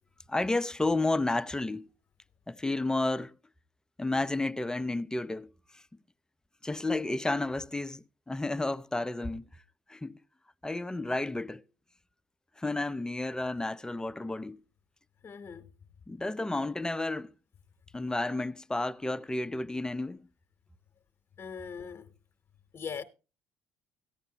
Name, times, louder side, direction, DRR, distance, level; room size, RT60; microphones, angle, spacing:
voice 1, 0.3-1.9 2.5-3.3 4.0-5.8 6.6-9.4 9.9-10.2 10.6-11.6 12.6-14.6 16.1-17.3 17.9-20.2, left 2 dB, 10° left, 0.5 m, -31 dB
voice 2, 15.2-15.7 21.4-22.1 22.7-23.0, left 6 dB, 40° left, 1.0 m, -40 dB
15.5 x 8.9 x 2.8 m
supercardioid pair, 80°, 6 cm